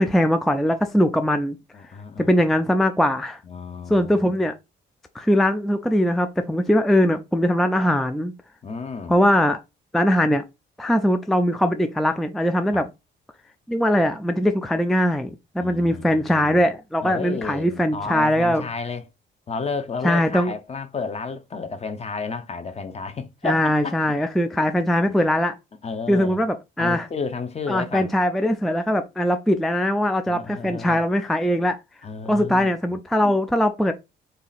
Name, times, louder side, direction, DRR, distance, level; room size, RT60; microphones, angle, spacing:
voice 1, 0.0-1.6 2.2-3.4 3.9-4.5 5.1-8.3 9.1-9.6 9.9-10.4 10.8-12.9 13.7-18.6 20.0-20.5 23.4-25.5 26.1-27.1 27.7-31.8 32.3-33.9, equal, ahead, 0.3 m, -21 dB
voice 2, 1.7-2.3 3.4-4.4 8.6-9.1 12.7-12.8 15.6-16.6 17.0-19.0 19.5-24.0 25.1-25.2 25.8-26.4 26.8-28.1 30.3-31.0 32.0-32.7 33.2-33.4, left 4 dB, 30° left, 0.7 m, -32 dB
3.1 x 2.8 x 4.0 m
cardioid pair, 90°, 20 cm